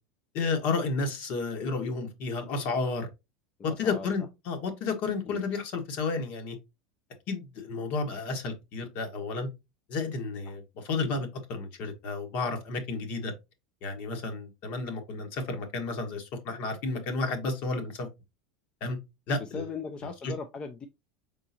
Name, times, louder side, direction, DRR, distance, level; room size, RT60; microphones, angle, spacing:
voice 1, 0.3-3.1 3.6-6.6 7.3-9.5 9.9-13.3 13.8-18.1 18.8-19.0 19.3-19.7 20.2-20.3, left 3 dB, 60° left, 1.3 m, -32 dB
voice 2, 3.6-4.1 5.3-5.4 10.5-10.6 19.5-20.9, left 4 dB, 30° left, 0.6 m, -38 dB
4.6 x 3.8 x 2.8 m
supercardioid pair, 105°, 3 cm